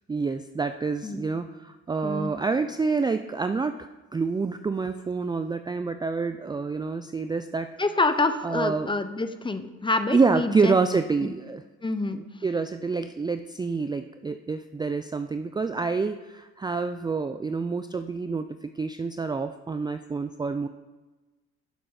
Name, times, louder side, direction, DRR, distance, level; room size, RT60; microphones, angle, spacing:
voice 1, 0.1-3.8 4.1-7.7 8.4-8.9 10.1-11.6 12.1-20.7, right 4 dB, 15° right, 9 dB, 0.3 m, -27 dB
voice 2, 7.8-10.8 11.2-11.3 11.8-12.2, left 3 dB, 15° left, 10 dB, 0.7 m, -27 dB
12.0 x 6.0 x 4.8 m, 1.2 s
cardioid pair, 90°, 30 cm